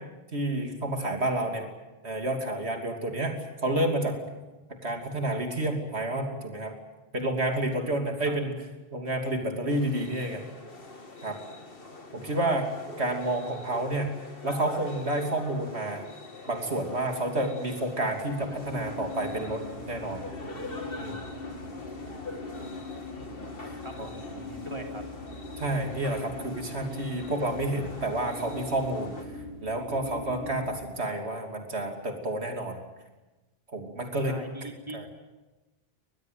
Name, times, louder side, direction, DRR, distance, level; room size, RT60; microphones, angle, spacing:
voice 1, 0.3-1.6 2.0-3.4 3.6-4.2 4.8-6.7 7.1-8.5 8.9-10.4 11.2-11.4 12.1-12.7 13.0-14.1 14.4-16.1 16.5-19.6 19.9-20.2 20.9-21.2 25.6-29.2 29.6-32.8 33.7-34.3 34.9-35.0, right 1 dB, 75° right, 3 dB, 3.2 m, -29 dB
sound 1, 9.7-29.2, left 2 dB, 60° left, 2.5 m, -44 dB
sound 2, 18.2-30.7, left 2 dB, 85° left, 8.6 m, -41 dB
voice 2, 23.8-25.0 34.2-35.0, right 1 dB, 25° right, 2 dB, 3.4 m, -42 dB
24.0 x 20.0 x 9.3 m, 1.1 s
omnidirectional pair, 1.1 m